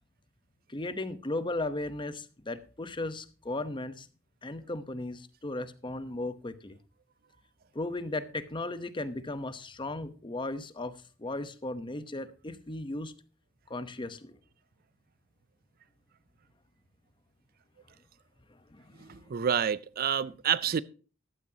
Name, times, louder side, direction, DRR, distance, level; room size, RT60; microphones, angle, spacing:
voice 1, 0.7-4.1 4.4-6.8 7.7-13.1 13.7-14.4 18.5-19.3, left 2 dB, 25° left, 0.9 m, -36 dB
voice 2, 19.0-20.8, right 8 dB, 50° right, 0.4 m, -28 dB
14.5 x 12.0 x 2.8 m
head